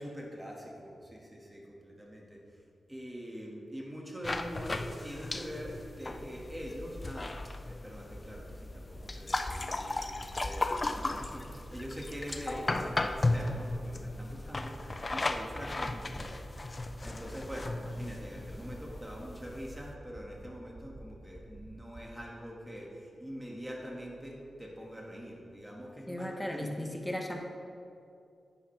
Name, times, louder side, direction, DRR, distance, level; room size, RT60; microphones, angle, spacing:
voice 1, 0.0-2.6 2.9-7.4 7.6-16.3 17.0-26.7, equal, 10° right, -2 dB, 2.1 m, -44 dB
sound 1, 4.2-19.9, left 2 dB, 35° left, 0.5 m, -36 dB
sound 2, 8.1-8.4 8.7-9.0 9.3-9.6 9.9-10.2 10.5-10.8 11.1-11.4 11.7-12.0 12.3-12.6 12.9-13.2 13.5-13.8 14.1-14.4 14.7-15.0 15.3-15.6 15.9-16.2 16.5-16.8 17.1-17.4 17.7-18.0 18.3-18.6 18.9-19.2 19.5-19.8 20.1-20.4 20.7-21.0 21.3-21.6 21.9-22.0, right 2 dB, 30° right, 1.4 m, -50 dB
voice 2, 26.1-27.4, left 1 dB, 10° left, 2 dB, 1.3 m, -36 dB
10.5 x 9.8 x 3.5 m, 2.6 s
cardioid pair, 70°, 0 cm